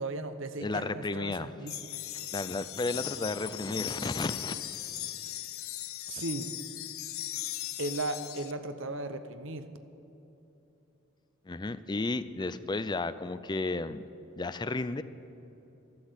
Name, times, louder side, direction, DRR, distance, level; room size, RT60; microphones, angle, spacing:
voice 1, 0.0-1.9 6.1-6.5 7.8-9.7, right 2 dB, 65° right, 9 dB, 0.9 m, -36 dB
voice 2, 0.6-1.5 2.3-4.6 11.5-14.0 14.4-15.0, left 3 dB, 20° left, 13 dB, 0.4 m, -33 dB
sound 1, 1.7-8.5, left 13 dB, 85° left, 0.6 m, -38 dB
13.0 x 12.0 x 8.0 m, 3.0 s
head